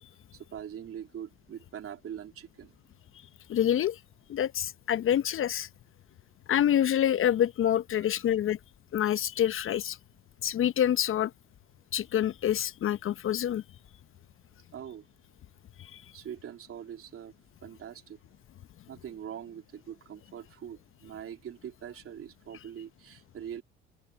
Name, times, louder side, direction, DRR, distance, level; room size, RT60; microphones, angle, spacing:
voice 1, 0.3-2.7 14.7-15.1 16.1-17.3 17.6-18.2 18.9-23.6, right 9 dB, 50° right, 3.3 m, -43 dB
voice 2, 3.5-4.0 4.3-5.7 6.5-8.6 8.9-10.0 10.4-11.3 11.9-13.6 15.8-16.0, left 10 dB, 45° left, 0.8 m, -27 dB
hypercardioid pair, 65°, 29 cm